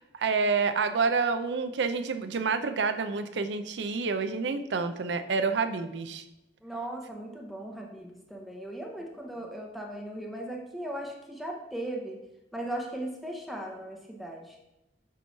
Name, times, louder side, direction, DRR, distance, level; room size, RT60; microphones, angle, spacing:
voice 1, 0.0-6.2, right 4 dB, 75° right, 10 dB, 0.5 m, -28 dB
voice 2, 6.6-12.2 12.5-14.6, right 1 dB, ahead, 0 dB, 0.7 m, -38 dB
6.9 x 3.1 x 5.6 m, 0.92 s
head